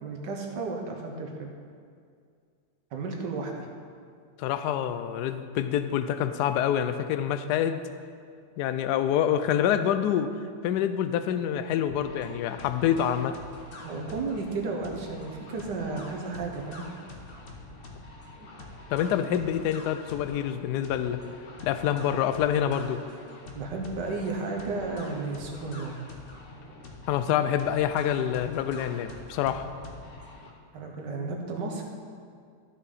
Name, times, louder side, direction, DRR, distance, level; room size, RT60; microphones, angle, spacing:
voice 1, 0.0-1.5 2.9-3.7 13.8-16.9 23.6-26.0 30.7-31.8, right 3 dB, 65° right, 1 dB, 1.7 m, -33 dB
voice 2, 4.4-7.8 8.6-10.3 10.6-13.4 18.9-21.2 21.6-23.0 27.1-29.7, left 9 dB, 70° left, 10 dB, 1.0 m, -26 dB
sound 1, 11.9-30.5, left 2 dB, 40° left, 1.0 m, -46 dB
13.0 x 6.4 x 4.0 m, 2.2 s
omnidirectional pair, 2.1 m